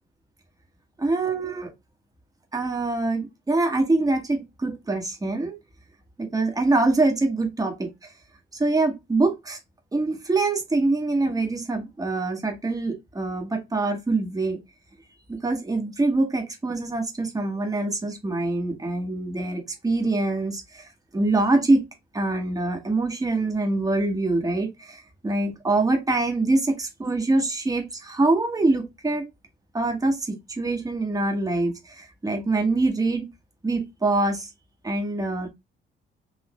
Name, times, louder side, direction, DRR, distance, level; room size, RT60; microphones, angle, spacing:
voice 1, 1.0-1.7 2.5-5.5 6.2-7.9 8.5-9.6 9.9-14.6 15.3-20.9 21.1-21.8 22.1-29.3 29.7-33.3 33.6-34.5 34.8-35.5, right 2 dB, 20° right, 1.2 m, -24 dB
4.0 x 2.5 x 3.0 m
cardioid pair, 90°, 20 cm